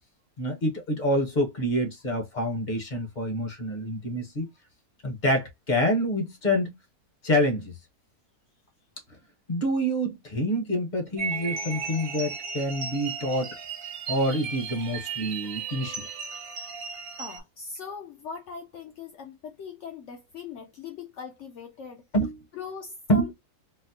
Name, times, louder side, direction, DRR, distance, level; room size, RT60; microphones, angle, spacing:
voice 1, 0.4-4.5 5.0-6.7 7.2-7.7 9.5-13.6 14.1-16.1 22.1-22.4 23.1-23.3, equal, 40° left, 0.7 m, -27 dB
sound 1, 11.2-17.4, right 5 dB, 70° right, 1.3 m, -35 dB
voice 2, 17.2-22.0 22.5-23.3, left 5 dB, 65° left, 0.7 m, -40 dB
4.0 x 2.0 x 2.6 m
omnidirectional pair, 1.7 m